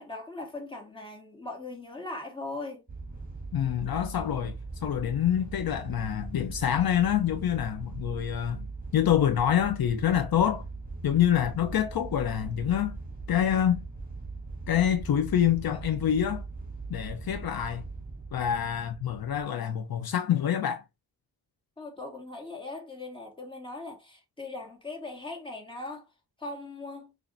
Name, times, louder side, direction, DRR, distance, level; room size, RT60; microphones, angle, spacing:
voice 1, 0.0-2.8 21.8-26.1 26.4-27.1, left 2 dB, 15° left, 1.9 m, -39 dB
sound 1, 2.9-19.4, right 3 dB, 20° right, 2.0 m, -40 dB
voice 2, 3.5-10.7 11.0-13.0 13.3-13.8 14.7-16.5 16.9-17.8 18.3-20.8, left 10 dB, 70° left, 0.7 m, -26 dB
6.0 x 2.7 x 2.7 m
cardioid pair, 80°, 38 cm